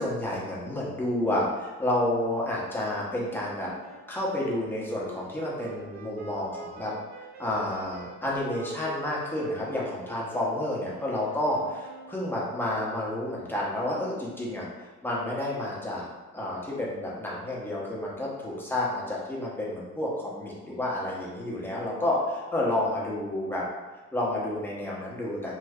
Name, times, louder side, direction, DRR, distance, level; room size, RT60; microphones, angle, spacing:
voice 1, 0.0-3.7 4.1-6.9 7.4-16.1 16.3-23.6 24.1-25.6, left 1 dB, 5° left, -6 dB, 1.0 m, -30 dB
Wind instrument woodwind instrument, 3.2-12.7, right 3 dB, 65° right, 0.6 m, -47 dB
3.2 x 2.2 x 3.6 m, 1.3 s
cardioid pair, 90°, 30 cm